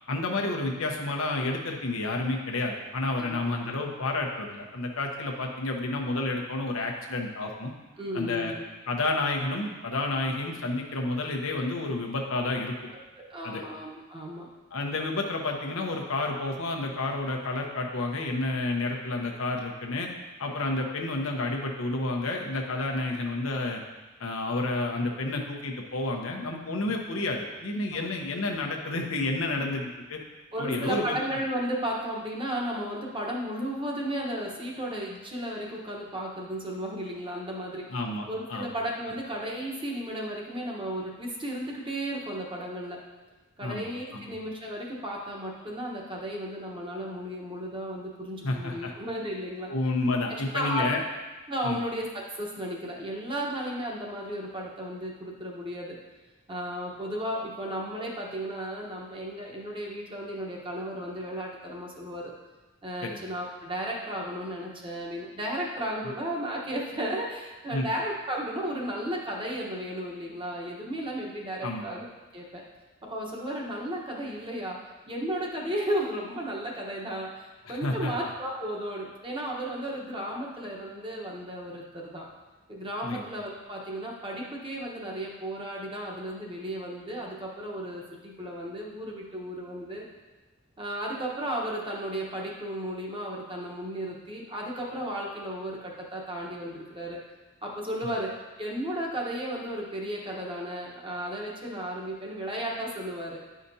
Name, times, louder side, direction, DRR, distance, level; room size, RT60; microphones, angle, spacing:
voice 1, 0.1-7.7 8.1-8.5 8.9-12.7 13.4-13.6 14.7-20.1 20.4-23.8 24.2-30.2 30.6-31.2 37.9-38.7 43.6-44.3 48.4-48.9 49.7-51.0 51.6-51.8 63.0-63.2 67.7-67.9 71.6-71.8 77.6-78.1 83.0-83.2, left 2 dB, 90° left, 1 dB, 0.9 m, -30 dB
voice 2, 8.0-8.6 13.2-14.5 27.9-28.0 30.5-38.0 38.3-43.0 43.6-49.7 50.5-50.8 51.5-56.0 56.5-62.3 62.8-72.1 72.3-72.6 73.1-74.8 75.1-82.3 82.7-90.0 90.8-97.2 97.6-103.4, right 1 dB, 25° right, -2 dB, 1.1 m, -34 dB
10.0 x 5.0 x 2.7 m, 1.2 s
head